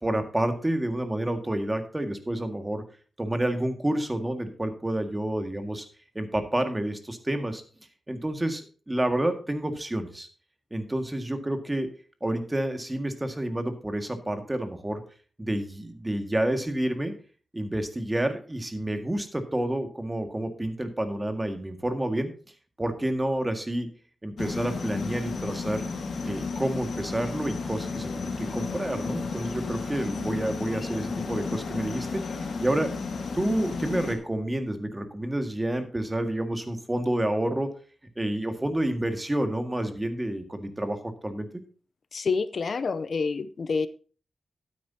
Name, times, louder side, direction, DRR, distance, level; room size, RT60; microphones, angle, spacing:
voice 1, 0.0-2.8 3.2-5.9 6.2-7.6 8.1-10.3 10.7-11.9 12.2-15.0 15.4-17.1 17.5-22.3 22.8-23.9 24.2-25.8 26.2-32.9 33.3-37.7 38.2-41.5, right 1 dB, 15° right, 6 dB, 1.8 m, -29 dB
sound 1, 24.4-34.2, left 4 dB, 80° left, 2.0 m, -33 dB
voice 2, 42.1-43.9, left 4 dB, 60° left, 15 dB, 0.5 m, -28 dB
12.5 x 9.7 x 2.8 m, 0.39 s
wide cardioid pair, 85°, 0 cm